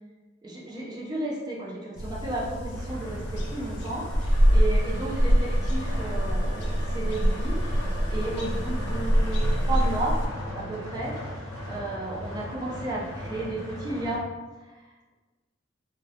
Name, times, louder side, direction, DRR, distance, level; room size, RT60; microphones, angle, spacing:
voice 1, 0.4-10.2 10.6-14.3 14.7-14.8, right 2 dB, 20° right, -5 dB, 0.5 m, -33 dB
sound 1, 2.0-10.3, equal, 60° left, 0.4 m, -25 dB
sound 2, 2.7-14.2, equal, 15° left, 0.7 m, -38 dB
sound 3, 4.3-9.2, left 1 dB, 50° right, 1.0 m, -45 dB
2.2 x 2.1 x 2.7 m, 1.3 s
head